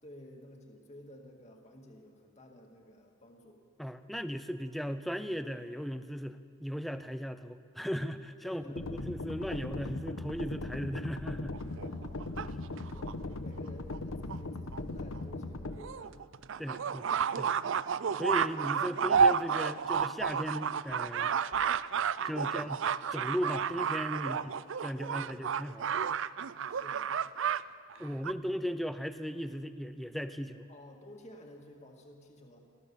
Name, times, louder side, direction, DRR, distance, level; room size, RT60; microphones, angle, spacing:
voice 1, 0.0-3.6 8.4-9.0 11.8-12.3 12.9-16.3 16.6-16.9 18.0-18.2 22.3-22.7 24.1-24.5 25.0-25.4 26.7-27.1 28.0-28.3 30.7-32.6, left 1 dB, 30° left, 1 dB, 1.9 m, -53 dB
voice 2, 3.8-11.6 12.5-12.6 16.6-17.0 17.4-17.5 18.2-21.3 22.2-22.8 23.1-24.4 24.8-25.9 28.0-30.7, equal, ahead, 10 dB, 0.7 m, -37 dB
sound 1, 8.8-15.8, left 2 dB, 70° left, 1.1 m, -39 dB
sound 2, 11.5-13.1 13.9-14.0 14.3-14.4 14.7-14.8 15.1-15.2 15.8-27.6 27.9-28.3, right 6 dB, 60° right, 0.4 m, -31 dB
29.5 x 13.0 x 7.1 m, 2.2 s
head